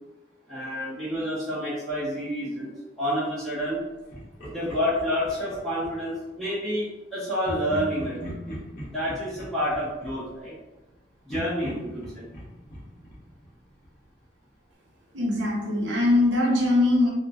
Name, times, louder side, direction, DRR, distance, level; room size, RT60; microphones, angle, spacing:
voice 1, 0.5-2.7 3.0-3.8 4.4-8.5 8.9-10.5 11.2-12.2, equal, ahead, -13 dB, 1.2 m, -29 dB
Laughter, 4.1-6.2 7.4-10.9 11.3-14.0, equal, 45° left, 0.9 m, -40 dB
voice 2, 15.1-17.1, left 2 dB, 75° right, -2 dB, 0.7 m, -21 dB
3.0 x 2.4 x 2.3 m, 1.0 s
head